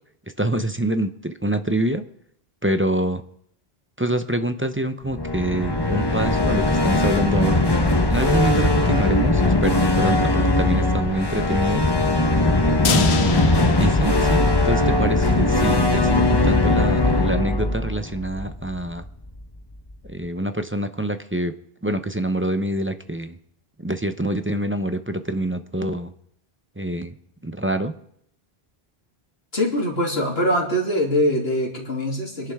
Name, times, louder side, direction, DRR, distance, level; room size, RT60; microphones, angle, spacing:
voice 1, 0.4-2.0 2.6-3.2 4.0-11.9 12.8-19.0 20.1-21.5 21.8-23.4 23.8-26.1 26.8-27.1 27.4-27.9, right 1 dB, 15° right, 8 dB, 0.7 m, -26 dB
sound 1, 5.1-19.1, left 2 dB, 25° left, 1.1 m, -20 dB
sound 2, 12.8-15.0 15.3-15.4 15.8-15.9, left 6 dB, 90° left, 1.2 m, -28 dB
voice 2, 29.5-32.5, equal, 70° left, -2 dB, 3.3 m, -23 dB
25.5 x 11.5 x 3.6 m, 0.70 s
omnidirectional pair, 1.1 m